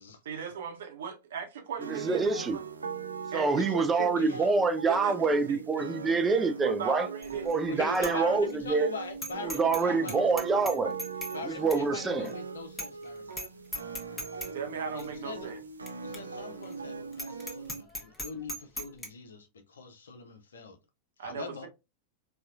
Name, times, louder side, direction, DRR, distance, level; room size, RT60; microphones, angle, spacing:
voice 1, 0.2-2.6 3.3-4.5 4.9-5.6 6.6-7.5 7.7-8.4 9.6-10.0 14.5-15.6 21.2-21.7, right 6 dB, 60° right, 0.8 m, -38 dB
sound 1, 1.8-17.8, right 5 dB, 75° right, 0.3 m, -40 dB
voice 2, 1.9-2.6 3.3-7.1 7.5-8.9 9.4-10.9 11.4-12.3, right 4 dB, 15° right, 0.5 m, -26 dB
voice 3, 3.7-4.5 7.7-10.3 11.3-13.5 14.9-15.5 16.0-20.8 21.2-21.7, left 3 dB, 70° left, 0.6 m, -42 dB
Bicycle bell, 7.2-7.6 8.0-8.1 8.5-8.6 9.2-9.8 10.1-11.4 11.7-11.8 12.3-12.4 12.8-13.0 13.3-13.5 13.7-14.5 15.0-15.1 15.9-16.0 16.1-16.2 16.6-16.7 17.1-19.1, equal, 5° left, 0.9 m, -38 dB
4.1 x 2.4 x 2.4 m
figure-of-eight pair, 90°, 0 cm